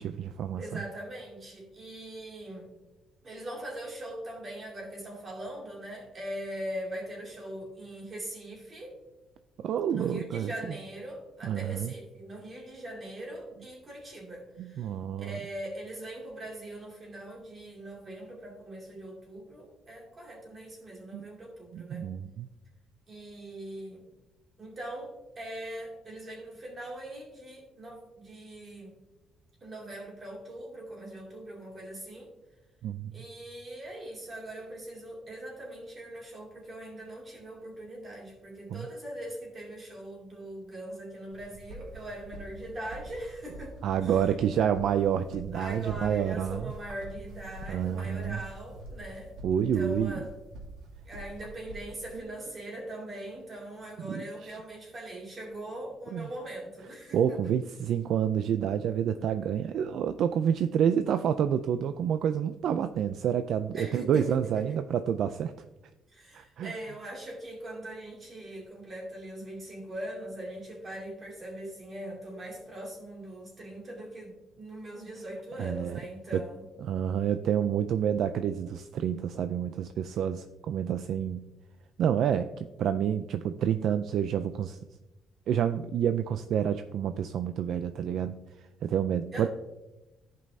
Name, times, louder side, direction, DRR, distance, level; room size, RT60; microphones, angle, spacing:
voice 1, 0.0-0.8 9.6-10.7 11.4-11.9 14.6-15.4 21.1-21.3 21.7-22.5 32.8-33.1 38.7-38.9 43.8-46.7 47.7-48.4 49.4-50.2 54.1-54.2 56.1-56.2 57.1-65.5 66.3-66.7 75.6-76.0 76.3-76.4 76.9-81.5 82.0-84.8 85.5-88.4 88.8-89.5, right 9 dB, 60° right, 10 dB, 0.3 m, -28 dB
voice 2, 0.6-2.7 3.2-9.0 9.9-14.9 15.2-22.1 23.1-24.0 24.6-29.0 29.6-32.3 33.1-44.2 45.5-50.3 51.0-57.5 63.7-64.8 66.1-76.7 89.3-89.5, right 1 dB, 30° right, -2 dB, 2.4 m, -41 dB
sound 1, 41.3-52.2, right 1 dB, 90° right, 2.4 m, -46 dB
14.5 x 5.3 x 2.7 m, 1.0 s
cardioid pair, 160°, 0 cm